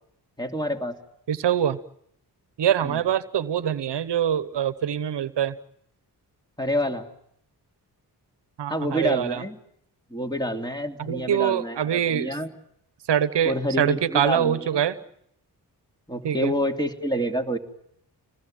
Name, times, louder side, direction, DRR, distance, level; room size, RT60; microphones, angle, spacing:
voice 1, 0.4-0.9 2.8-3.0 6.6-7.1 8.7-9.6 10.1-12.5 13.4-14.8 16.1-17.6, equal, 10° left, 4 dB, 3.0 m, -28 dB
voice 2, 1.3-1.8 2.6-5.5 8.6-9.4 11.0-12.4 13.1-14.9 16.2-16.5, right 9 dB, 80° right, 15 dB, 1.0 m, -24 dB
27.0 x 20.0 x 8.9 m, 0.73 s
cardioid pair, 50°, 41 cm